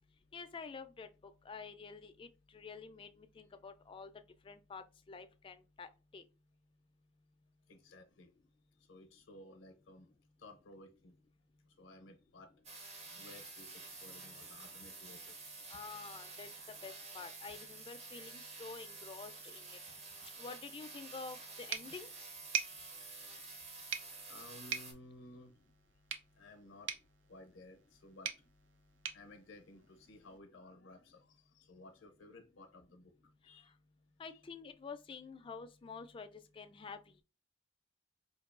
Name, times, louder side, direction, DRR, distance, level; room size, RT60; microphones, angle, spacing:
voice 1, 0.3-1.1 1.5-2.3 2.5-4.1 4.4-6.2 15.7-19.7 20.4-22.1 34.2-36.3 36.5-37.2, left 4 dB, 30° left, 0.3 m, -49 dB
voice 2, 7.7-8.3 8.9-10.1 10.4-11.2 11.8-12.5 13.0-15.5 24.3-25.5 26.4-26.9 27.3-28.3 29.1-33.1 33.4-33.7 34.3-34.4, left 2 dB, 85° left, 0.6 m, -56 dB
sound 1, 12.6-24.9, right 3 dB, 35° right, 0.8 m, -50 dB
sound 2, 21.7-30.4, right 7 dB, 70° right, 0.5 m, -45 dB
4.5 x 2.6 x 2.4 m
head